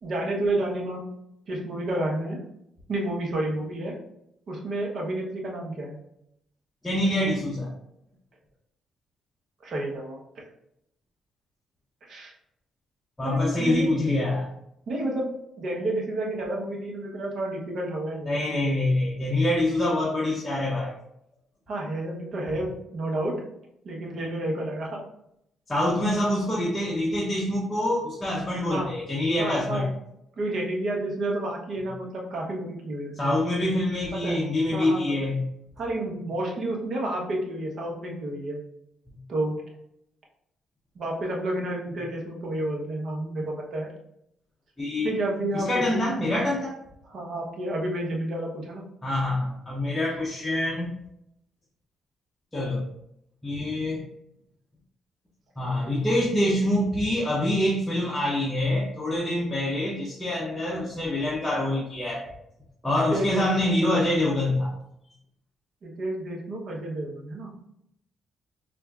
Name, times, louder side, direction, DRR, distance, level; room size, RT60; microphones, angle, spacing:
voice 1, 0.0-1.1 1.5-2.4 2.9-3.9 4.5-6.0 9.6-10.2 12.0-12.3 13.2-13.9 14.9-15.3 15.6-18.7 21.7-23.3 23.8-25.0 28.7-28.9 29.4-29.9 30.4-33.3 34.2-34.4 34.7-35.1 35.8-38.6 39.3-39.6 40.9-43.9 45.0-46.0 47.0-48.8 63.1-63.6 65.8-67.5, right 1 dB, 55° right, -1 dB, 1.0 m, -30 dB
voice 2, 6.8-7.7 13.2-14.5 18.3-20.9 25.7-29.9 33.1-35.4 39.1-39.2 44.8-45.1 45.5-46.8 49.0-50.9 52.5-52.9 53.4-54.0 55.6-62.3 62.8-64.7, left 1 dB, 10° left, -5 dB, 0.7 m, -25 dB
4.2 x 2.5 x 2.4 m, 0.76 s
cardioid pair, 90°, 0 cm